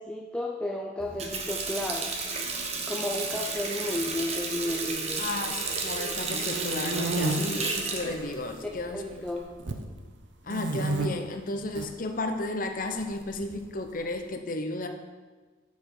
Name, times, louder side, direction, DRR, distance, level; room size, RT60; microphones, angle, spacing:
voice 1, 0.0-2.1 2.9-5.2 8.9-9.6, left 1 dB, 5° left, -1 dB, 0.4 m, -33 dB
Water tap faucet, 1.0-9.5, right 4 dB, 30° right, 0.8 m, -33 dB
voice 2, 5.2-9.2 10.4-14.9, left 2 dB, 45° left, 6 dB, 0.7 m, -33 dB
sound 1, 5.9-7.3 8.0-8.6 8.9-9.9 10.5-11.1 11.6-11.9 13.0-13.9, right 2 dB, 65° right, 0.7 m, -31 dB
8.3 x 6.6 x 4.8 m, 1.4 s
head